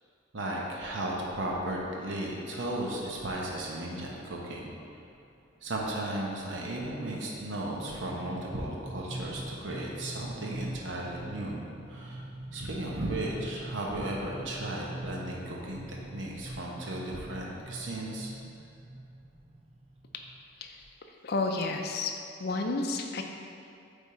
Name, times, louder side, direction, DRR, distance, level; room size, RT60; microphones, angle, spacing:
voice 1, 0.3-4.7 5.6-11.6 11.9-12.2 12.5-18.3, right 1 dB, 70° right, -3 dB, 0.9 m, -35 dB
sound 1, 1.8-2.0 2.9-3.0 3.4-3.5 3.8-4.1 4.5-20.9, right 1 dB, 30° right, 0.6 m, -44 dB
voice 2, 21.2-22.1 22.4-23.2, left 3 dB, 55° left, 3 dB, 0.5 m, -31 dB
8.2 x 3.6 x 4.3 m, 2.5 s
head